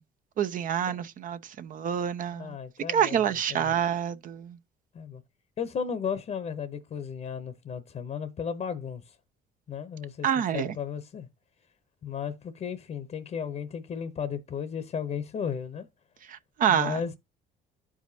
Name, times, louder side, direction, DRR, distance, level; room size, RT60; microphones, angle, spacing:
voice 1, 0.4-2.6 2.9-4.6 10.2-10.7 16.3-17.0, right 9 dB, 55° right, 0.7 m, -27 dB
voice 2, 2.3-3.7 4.9-5.2 5.6-9.1 9.7-10.3 10.5-11.3 12.0-15.9 16.7-17.1, left 7 dB, 40° left, 0.8 m, -34 dB
12.5 x 4.9 x 2.7 m
cardioid pair, 110°, 17 cm